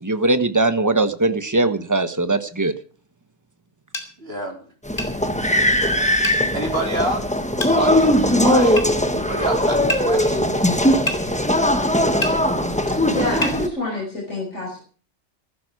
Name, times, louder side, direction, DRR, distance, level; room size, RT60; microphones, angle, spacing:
voice 1, 0.0-2.7, right 2 dB, 15° right, 10 dB, 1.2 m, -20 dB
sound 1, 3.9-4.1 5.0-5.1 6.2-6.4 7.6-7.8 8.8-8.9 9.9-10.1 11.1-11.2 12.2-12.4 13.4-13.6, equal, 45° left, 3.1 m, -26 dB
voice 2, 4.2-4.6 6.5-7.2 7.7-8.8 9.1-10.6, right 2 dB, 50° right, 1 dB, 4.3 m, -27 dB
sound 2, 4.9-13.7, left 1 dB, 5° left, 1.2 m, -19 dB
voice 3, 13.0-14.8, left 2 dB, 75° left, -3 dB, 5.9 m, -27 dB
15.5 x 14.5 x 4.7 m, 0.42 s
omnidirectional pair, 1.3 m